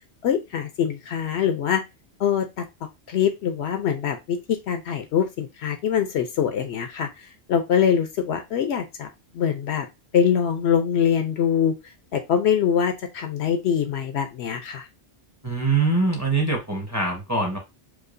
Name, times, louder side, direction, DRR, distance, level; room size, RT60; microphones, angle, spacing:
voice 1, 0.2-1.8 2.2-2.7 3.1-9.1 9.3-9.9 10.1-11.7 12.1-14.9, left 8 dB, 70° left, 7 dB, 0.8 m, -23 dB
voice 2, 15.4-17.6, right 3 dB, 15° right, 0 dB, 0.9 m, -23 dB
4.8 x 2.3 x 2.5 m, 0.23 s
omnidirectional pair, 1.2 m